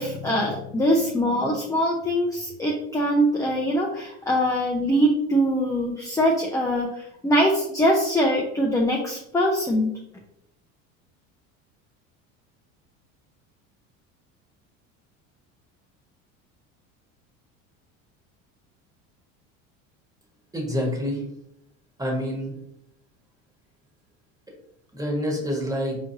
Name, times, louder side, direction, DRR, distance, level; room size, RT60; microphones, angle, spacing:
voice 1, 0.0-9.9, equal, 10° left, -1 dB, 0.6 m, -23 dB
voice 2, 20.5-21.2 22.0-22.5 24.9-26.0, equal, 10° right, -1 dB, 1.4 m, -27 dB
4.4 x 3.0 x 2.8 m, 0.75 s
hypercardioid pair, 80°, 39 cm